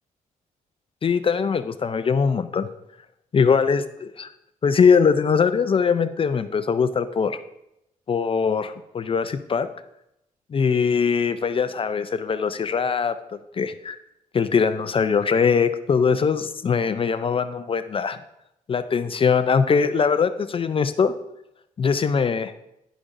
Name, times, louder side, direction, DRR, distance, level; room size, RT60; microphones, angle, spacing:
voice 1, 1.0-2.7 3.3-3.8 4.2-4.3 4.6-7.4 8.1-9.7 10.5-13.1 13.6-14.0 14.3-18.2 18.7-21.1 21.8-22.5, left 6 dB, 40° left, 11 dB, 0.4 m, -21 dB
11.0 x 5.0 x 2.6 m, 0.83 s
cardioid pair, 75°, 15 cm